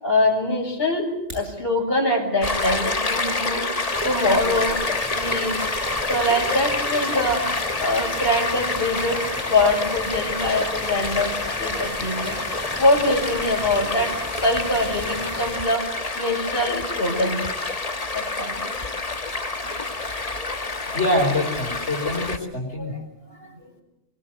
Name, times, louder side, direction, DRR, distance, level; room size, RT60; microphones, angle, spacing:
voice 1, 0.0-3.7 4.0-4.8 5.1-5.6 6.1-7.4 7.8-11.3 11.6-12.4 12.8-15.9 16.2-17.4 18.1-18.6 22.8-23.0, left 1 dB, 55° left, 1 dB, 6.4 m, -23 dB
sound 1, 1.0-1.6, right 1 dB, 75° right, 8.4 m, -40 dB
Stream, 2.4-22.4, left 3 dB, 35° left, 1.5 m, -28 dB
sound 2, 3.9-15.6, equal, 10° right, 3.1 m, -37 dB
voice 2, 20.9-22.9, left 1 dB, 75° left, -1 dB, 5.0 m, -24 dB
23.0 x 23.0 x 7.8 m, 0.87 s
omnidirectional pair, 1.2 m